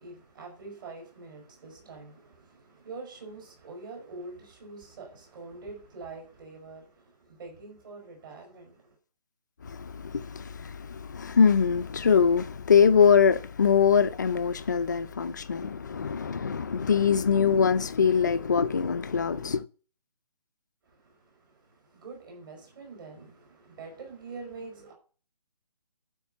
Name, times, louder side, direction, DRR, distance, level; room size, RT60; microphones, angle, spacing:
voice 1, 0.0-9.0 20.8-24.9, right 3 dB, 35° right, 5.1 m, -45 dB
voice 2, 9.6-19.6, left 6 dB, 30° left, 0.5 m, -23 dB
12.0 x 5.3 x 7.4 m
hypercardioid pair, 170°, 20 cm